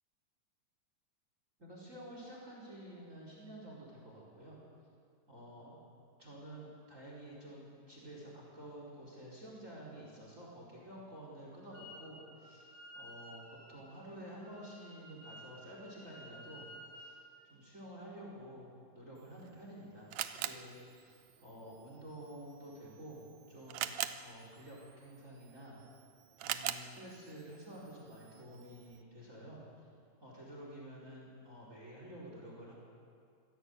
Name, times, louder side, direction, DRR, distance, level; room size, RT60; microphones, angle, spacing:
voice 1, 1.6-4.6 5.3-5.8 6.2-16.7 16.9-17.2 17.4-23.2 23.5-25.8 26.4-29.9 30.2-32.7, right 1 dB, 20° right, -3 dB, 4.8 m, -50 dB
Wind instrument woodwind instrument, 11.7-12.1 12.4-17.2, equal, 35° left, 3.4 m, -54 dB
Camera, 19.2-29.0, right 12 dB, 75° right, 1.7 m, -45 dB
25.5 x 16.5 x 8.2 m, 2.4 s
omnidirectional pair, 3.9 m